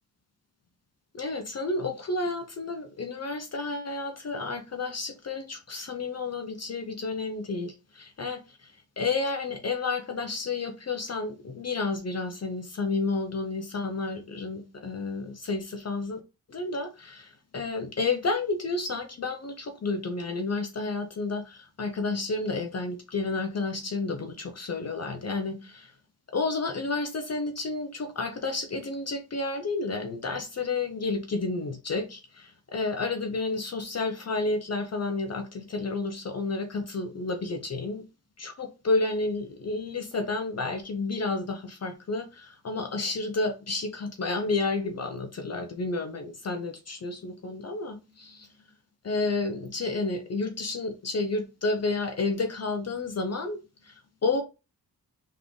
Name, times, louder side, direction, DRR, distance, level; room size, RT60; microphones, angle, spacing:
voice 1, 1.1-16.2 16.5-25.9 26.3-38.1 38.4-48.5 49.0-54.4, left 3 dB, 40° left, 0.7 m, -31 dB
3.7 x 3.2 x 3.7 m
cardioid pair, 85°, 38 cm